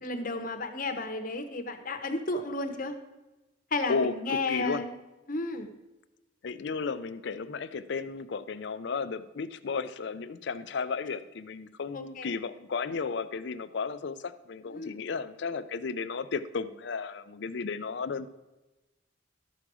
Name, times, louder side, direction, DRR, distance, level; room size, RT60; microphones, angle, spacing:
voice 1, 0.0-2.9 3.7-4.9 5.3-5.8 11.9-12.3 14.6-15.0, left 2 dB, 45° left, 7 dB, 0.9 m, -33 dB
voice 2, 3.9-4.8 6.4-18.3, left 5 dB, 60° left, 13 dB, 0.5 m, -34 dB
12.5 x 4.9 x 6.2 m, 1.1 s
head